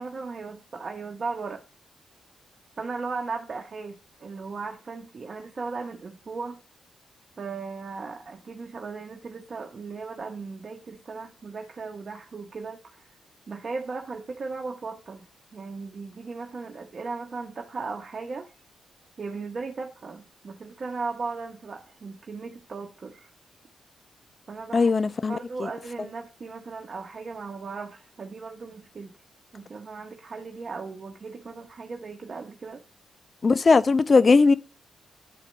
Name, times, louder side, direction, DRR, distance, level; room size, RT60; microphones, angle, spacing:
voice 1, 0.0-1.6 2.8-6.6 7.4-13.2 13.5-15.3 15.5-18.5 19.2-23.3 24.5-24.9 25.3-29.1 29.5-32.8, right 4 dB, 50° right, 0.9 m, -37 dB
voice 2, 24.7-25.7 33.4-34.5, left 4 dB, 45° left, 0.6 m, -19 dB
10.5 x 4.4 x 4.0 m
hypercardioid pair, 40°, 0 cm